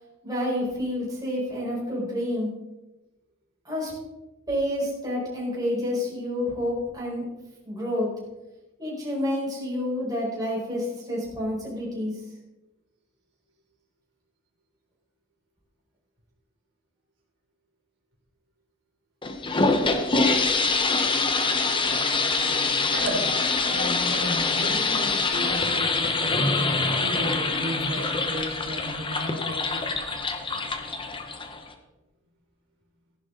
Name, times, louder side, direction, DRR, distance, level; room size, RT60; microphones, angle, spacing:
voice 1, 0.2-2.5 3.6-3.9 4.5-7.2 7.6-8.1 8.8-12.1, left 1 dB, 20° right, -5 dB, 4.9 m, -29 dB
sound 1, 19.2-31.7, left 3 dB, 25° left, 1.1 m, -25 dB
voice 2, 22.9-23.3 23.7-26.3 27.0-30.0, equal, 60° right, -3 dB, 3.7 m, -34 dB
15.0 x 10.5 x 3.9 m, 1.0 s
head